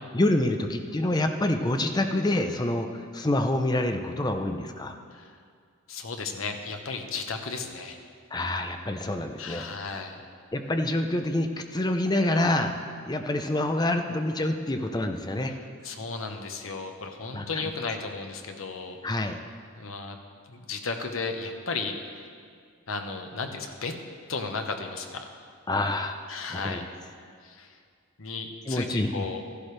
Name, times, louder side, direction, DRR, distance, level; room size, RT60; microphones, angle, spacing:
voice 1, 0.1-2.9 3.1-5.0 8.3-9.6 10.5-12.8 13.0-15.5 17.3-17.5 19.0-19.4 25.7-26.2 26.5-26.8 28.7-29.2, left 1 dB, 20° left, 6 dB, 0.6 m, -27 dB
voice 2, 5.9-8.0 9.4-10.2 15.5-19.0 19.8-20.2 20.5-22.3 22.9-23.9 24.3-25.5 26.3-26.8 27.4-27.8 28.2-29.4, left 4 dB, 80° left, 5 dB, 1.0 m, -34 dB
13.5 x 11.5 x 3.3 m, 2.1 s
head